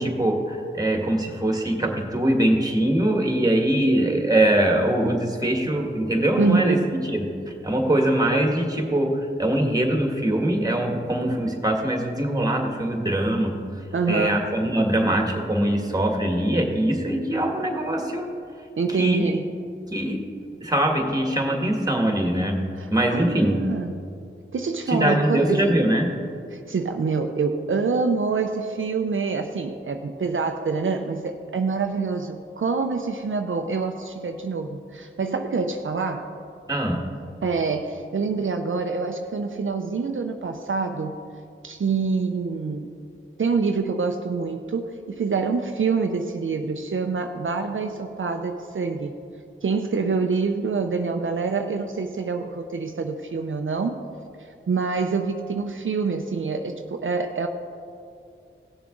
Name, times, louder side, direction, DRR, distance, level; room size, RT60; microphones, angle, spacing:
voice 1, 0.0-6.8 7.1-7.3 7.6-13.5 14.1-18.3 19.0-19.4 19.9-20.2 20.6-22.6 22.9-23.6 24.9-26.1 36.7-37.0, right 1 dB, 15° right, 2 dB, 1.8 m, -22 dB
voice 2, 6.4-6.9 13.9-14.4 18.8-19.5 22.8-23.9 24.5-25.8 26.5-36.3 37.4-41.2 41.6-42.9 43.4-49.1 49.6-54.0 54.7-57.5, right 4 dB, 70° right, 5 dB, 0.6 m, -26 dB
17.0 x 6.9 x 3.8 m, 2.4 s
wide cardioid pair, 55°, 21 cm